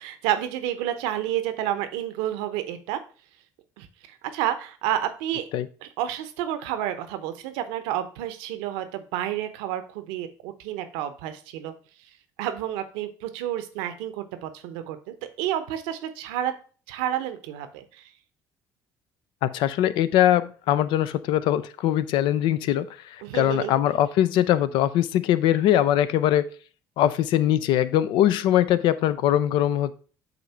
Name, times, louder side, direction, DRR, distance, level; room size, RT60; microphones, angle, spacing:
voice 1, 0.0-3.0 3.8-5.4 5.8-11.7 12.4-16.5 16.9-18.0 23.2-23.8, right 11 dB, 80° right, 9 dB, 0.8 m, -30 dB
voice 2, 19.4-22.9 23.3-26.5 27.0-29.9, left 12 dB, 70° left, 14 dB, 0.5 m, -21 dB
7.9 x 2.7 x 5.6 m, 0.40 s
hypercardioid pair, 65°, 9 cm